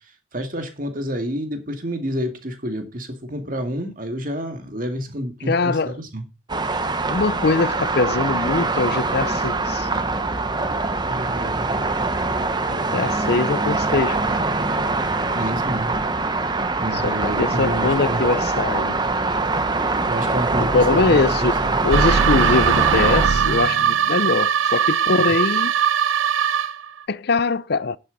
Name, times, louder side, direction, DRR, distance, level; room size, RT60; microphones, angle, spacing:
voice 1, 0.3-6.2 11.0-11.9 15.3-15.9 16.8-18.2 20.1-21.2 21.6-21.8 25.1-25.3, equal, 45° right, 2.2 m, -29 dB
voice 2, 5.5-6.0 7.1-9.9 12.7-14.4 16.9-19.0 20.6-25.8 27.1-28.0, left 3 dB, 55° left, 0.5 m, -22 dB
sound 1, 6.5-23.3, right 3 dB, 20° right, 0.9 m, -23 dB
sound 2, 21.9-26.9, right 7 dB, 80° right, 0.7 m, -20 dB
11.0 x 8.6 x 4.0 m
head